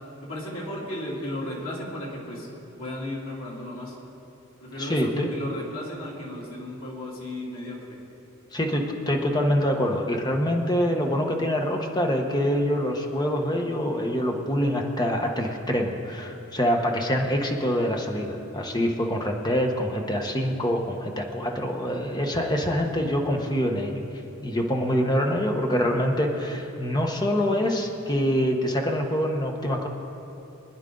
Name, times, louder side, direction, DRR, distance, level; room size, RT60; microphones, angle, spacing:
voice 1, 0.2-2.5 2.8-4.0 4.6-8.0, left 1 dB, 80° left, -5 dB, 3.1 m, -34 dB
voice 2, 4.8-5.3 8.5-24.0 24.4-29.9, equal, 20° left, 1 dB, 1.1 m, -25 dB
24.5 x 10.0 x 3.9 m, 2.9 s
head